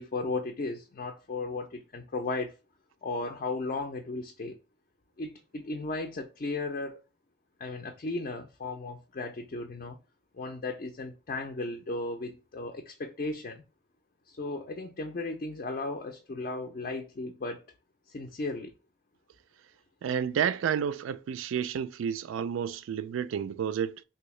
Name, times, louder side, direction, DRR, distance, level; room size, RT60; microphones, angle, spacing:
voice 1, 0.0-2.6 3.0-4.6 5.2-7.0 7.6-10.0 10.3-13.6 14.3-17.6 18.1-18.7, left 3 dB, 45° left, 0.4 m, -35 dB
voice 2, 20.0-24.0, right 8 dB, 85° right, 0.3 m, -30 dB
3.4 x 2.7 x 3.1 m
head